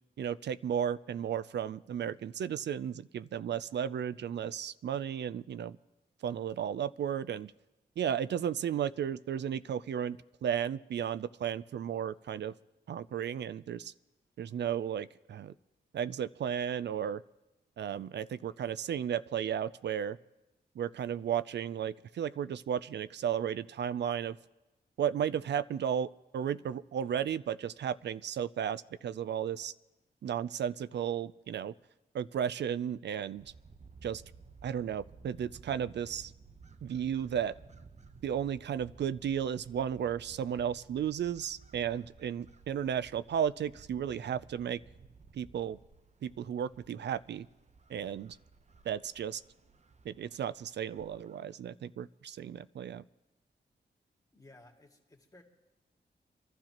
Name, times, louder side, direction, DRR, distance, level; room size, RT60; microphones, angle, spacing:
voice 1, 0.2-5.8 6.2-7.5 8.0-12.5 12.9-13.9 14.4-15.5 15.9-17.2 17.8-20.2 20.8-24.4 25.0-29.7 30.2-31.7 32.1-33.5 34.0-34.2 34.6-36.3 36.8-37.5 38.2-44.8 45.3-45.8 46.2-47.5 47.9-48.4 48.9-49.4 50.1-53.0, right 9 dB, 75° right, 16 dB, 0.4 m, -34 dB
sound 1, 33.4-51.6, right 4 dB, 40° right, 0.7 m, -56 dB
voice 2, 54.3-55.4, left 2 dB, 20° left, 1 dB, 2.2 m, -57 dB
26.0 x 12.0 x 2.9 m, 1.0 s
cardioid pair, 65°, 18 cm